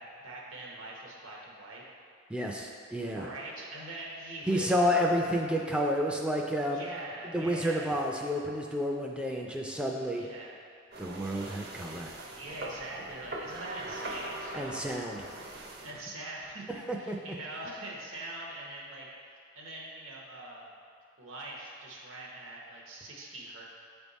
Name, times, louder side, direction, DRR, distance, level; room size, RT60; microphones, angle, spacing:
voice 1, 0.0-1.8 3.1-5.1 6.7-7.9 10.1-10.6 11.3-11.5 12.4-14.9 15.8-19.1 19.5-20.7 21.2-23.6, right 2 dB, 85° right, -3 dB, 1.1 m, -43 dB
voice 2, 2.3-3.3 4.5-6.8 7.3-10.2 11.0-12.1 14.5-15.2 17.1-17.2, equal, 5° right, 0 dB, 0.3 m, -30 dB
sound 1, 10.9-15.9, right 1 dB, 50° right, 0.6 m, -41 dB
7.7 x 3.5 x 4.0 m, 2.2 s
head